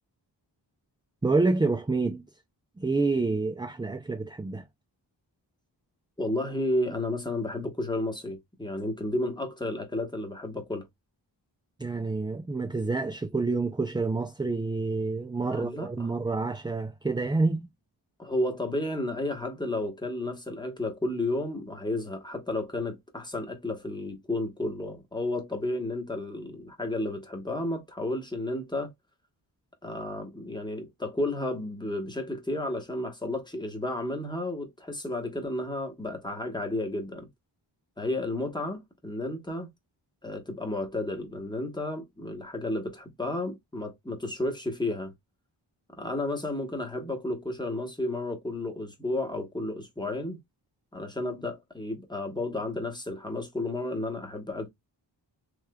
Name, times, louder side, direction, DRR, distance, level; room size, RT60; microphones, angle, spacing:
voice 1, 1.2-2.2 2.8-4.6 11.8-17.7, right 3 dB, 10° right, 0.3 m, -28 dB
voice 2, 6.2-10.9 15.4-16.1 18.2-28.9 29.8-37.3 38.0-39.7 40.2-45.1 46.0-50.4 50.9-54.7, left 1 dB, 10° left, 1.1 m, -32 dB
3.2 x 3.1 x 2.2 m
wide cardioid pair, 110°, 44 cm